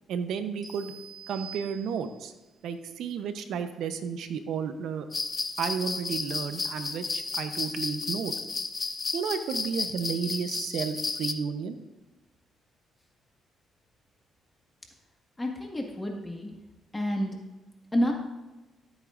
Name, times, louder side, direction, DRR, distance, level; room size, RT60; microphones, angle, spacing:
voice 1, 0.1-0.9 1.3-2.3 2.6-5.1 5.6-8.3 9.1-11.8, right 6 dB, 80° right, 9 dB, 0.8 m, -32 dB
sound 1, 0.6-2.4, right 7 dB, ahead, 3.5 m, -46 dB
sound 2, 5.1-11.3, left 4 dB, 35° left, 0.7 m, -33 dB
voice 2, 15.4-16.6 16.9-17.4 17.9-18.1, equal, 15° left, 0 dB, 1.7 m, -29 dB
14.0 x 8.4 x 2.6 m, 1.1 s
cardioid pair, 90°, 0 cm